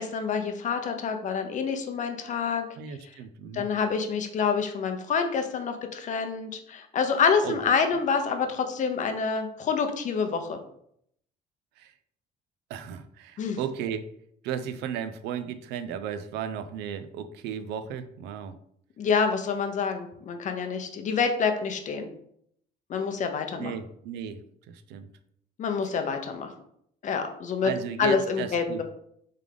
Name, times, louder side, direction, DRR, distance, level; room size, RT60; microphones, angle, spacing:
voice 1, 0.0-2.6 3.5-10.6 13.4-13.6 19.0-22.1 22.9-23.7 25.6-26.5 27.0-27.7 28.0-28.8, left 5 dB, 45° left, 6 dB, 0.7 m, -27 dB
voice 2, 2.8-3.7 7.4-8.0 11.8-11.9 12.7-14.1 14.4-18.6 23.6-24.4 24.7-25.1 27.6-28.8, right 8 dB, 85° right, 11 dB, 0.4 m, -35 dB
3.6 x 3.3 x 3.4 m, 0.69 s
cardioid pair, 110°, 17 cm